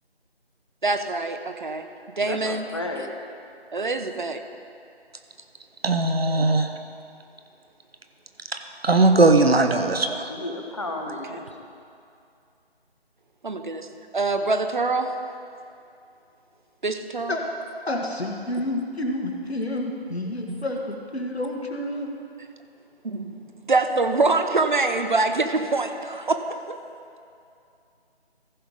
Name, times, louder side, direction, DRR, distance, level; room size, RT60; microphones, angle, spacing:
voice 1, 0.8-1.9 2.2-2.7 3.7-4.4 11.3-11.4 13.4-13.9 14.1-15.1 16.8-17.3 20.5-20.6 23.0-23.4 23.7-26.8, right 3 dB, 50° right, 7 dB, 0.7 m, -24 dB
voice 2, 2.2-3.1 10.3-11.5, left 2 dB, 30° left, 2 dB, 0.8 m, -32 dB
voice 3, 5.8-6.7 8.8-10.3, right 2 dB, 70° right, 6 dB, 1.0 m, -19 dB
voice 4, 17.9-22.1, left 1 dB, 75° left, 1 dB, 1.7 m, -29 dB
14.5 x 5.7 x 5.0 m, 2.5 s
figure-of-eight pair, 160°, 32 cm